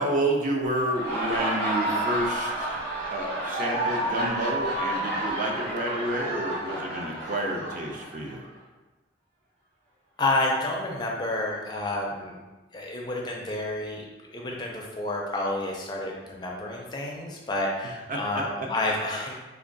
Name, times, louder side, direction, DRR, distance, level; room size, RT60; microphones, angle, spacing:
voice 1, 0.0-2.8 3.1-8.4 18.1-18.2, right 1 dB, 45° right, 0 dB, 0.5 m, -29 dB
Laughter, 0.8-8.4, right 1 dB, 65° right, 1.3 m, -30 dB
voice 2, 10.2-12.4 12.7-14.0 14.3-19.3, left 2 dB, 25° left, -1 dB, 0.4 m, -29 dB
3.4 x 2.3 x 3.8 m, 1.2 s
head